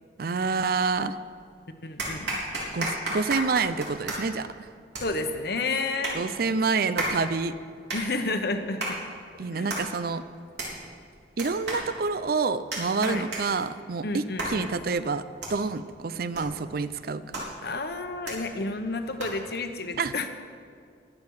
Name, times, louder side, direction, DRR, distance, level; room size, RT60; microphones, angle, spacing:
voice 1, 0.2-1.2 2.7-4.5 6.1-7.5 9.4-10.2 11.4-15.2 15.5-17.4 20.0-20.1, right 4 dB, 55° right, 14 dB, 0.5 m, -28 dB
sound 1, 0.9-1.5 2.0-19.6, right 1 dB, 75° right, 3.7 m, -36 dB
voice 2, 1.8-2.4 5.0-6.6 7.9-9.0 9.4-9.7 13.0-13.2 14.0-14.7 17.6-20.3, left 3 dB, 60° left, 7 dB, 1.1 m, -31 dB
22.0 x 8.5 x 4.8 m, 2.2 s
head